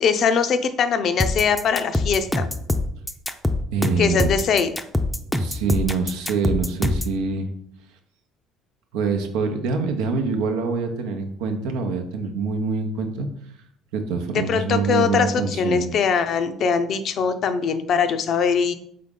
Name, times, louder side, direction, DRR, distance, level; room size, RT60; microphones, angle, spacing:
voice 1, 0.0-2.5 4.0-4.7 14.3-18.7, left 6 dB, 55° left, 10 dB, 0.5 m, -21 dB
sound 1, 1.2-7.2, left 2 dB, 5° left, 0.5 m, -24 dB
voice 2, 3.7-4.3 5.4-7.5 8.9-13.3 13.9-15.9, right 4 dB, 80° right, 5 dB, 0.6 m, -25 dB
3.8 x 3.6 x 3.7 m, 0.68 s
supercardioid pair, 75°, 0 cm